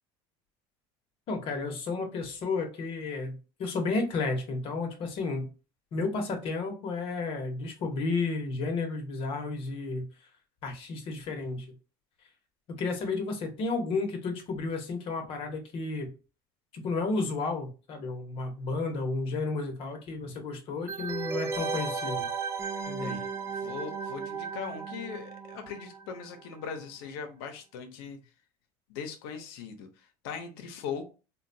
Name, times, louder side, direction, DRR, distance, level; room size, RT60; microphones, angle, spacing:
voice 1, 1.3-5.5 5.9-10.1 10.6-11.7 12.7-16.1 16.7-22.3 22.9-23.2, left 3 dB, 50° left, 4 dB, 1.0 m, -32 dB
sound 1, 20.9-26.4 26.6-26.7, right 4 dB, 20° right, 0.4 m, -35 dB
voice 2, 23.0-28.2 28.9-31.1, left 6 dB, 90° left, 6 dB, 0.7 m, -40 dB
3.8 x 2.2 x 2.6 m, 0.32 s
cardioid pair, 130°, 12 cm